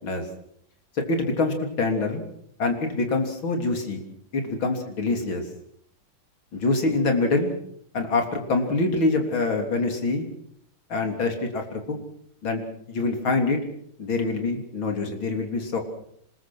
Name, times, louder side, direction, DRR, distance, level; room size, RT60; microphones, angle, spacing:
voice 1, 1.1-2.2 2.6-4.0 4.3-5.4 6.5-7.5 7.9-10.3 10.9-12.0 12.4-12.6 12.9-13.6 14.0-15.8, left 3 dB, 65° left, 4 dB, 4.3 m, -25 dB
26.5 x 21.0 x 6.3 m, 0.66 s
omnidirectional pair, 2.4 m